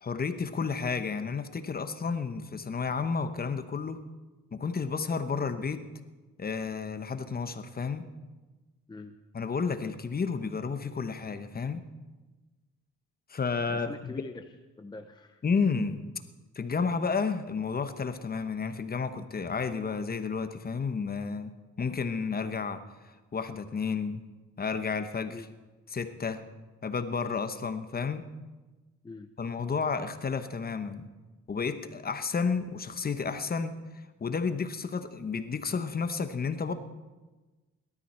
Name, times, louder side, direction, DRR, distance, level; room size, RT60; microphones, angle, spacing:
voice 1, 0.0-4.0 4.5-5.9 6.4-8.1 9.3-11.8 13.3-14.1 15.4-16.0 16.5-21.5 21.8-22.8 23.3-24.2 24.6-25.4 25.9-26.4 26.8-28.3 29.4-31.1 31.5-33.8 34.2-36.7, left 5 dB, 30° left, 10 dB, 1.0 m, -31 dB
voice 2, 13.7-15.4 25.3-25.5 29.0-29.3, left 3 dB, 15° left, 7 dB, 0.6 m, -44 dB
18.5 x 12.5 x 4.4 m, 1.2 s
cardioid pair, 90°, 30 cm